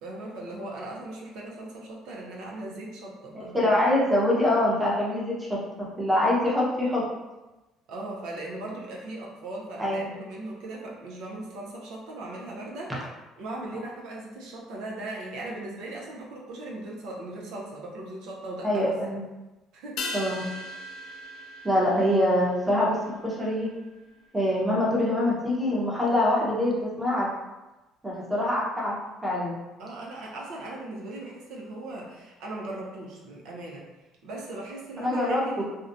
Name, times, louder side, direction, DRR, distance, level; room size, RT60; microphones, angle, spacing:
voice 1, 0.0-3.7 7.9-13.1 13.4-18.9 19.7-20.0 29.8-33.9 34.2-35.6, right 2 dB, 80° right, -2 dB, 0.5 m, -38 dB
voice 2, 3.3-5.3 6.0-7.0 9.8-10.1 18.6-19.2 20.1-20.4 21.6-23.7 24.3-27.3 28.0-28.9 29.2-29.6 35.0-35.6, left 1 dB, 10° right, -5 dB, 0.7 m, -24 dB
sound 1, 20.0-24.7 24.9-25.0, left 2 dB, 70° left, 0.3 m, -39 dB
2.4 x 2.1 x 2.5 m, 1.1 s
supercardioid pair, 95°, 0 cm